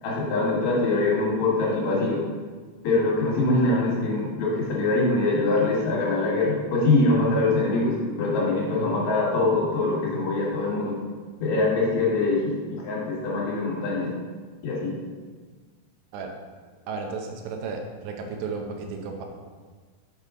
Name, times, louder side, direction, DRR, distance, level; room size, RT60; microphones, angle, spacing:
voice 1, 0.0-2.2 2.8-11.0 11.4-14.1 14.6-15.0, left 2 dB, 75° left, -5 dB, 3.8 m, -23 dB
voice 2, 16.9-19.2, right 4 dB, 85° right, 3 dB, 3.0 m, -33 dB
6.8 x 6.6 x 3.8 m, 1.5 s
omnidirectional pair, 4.6 m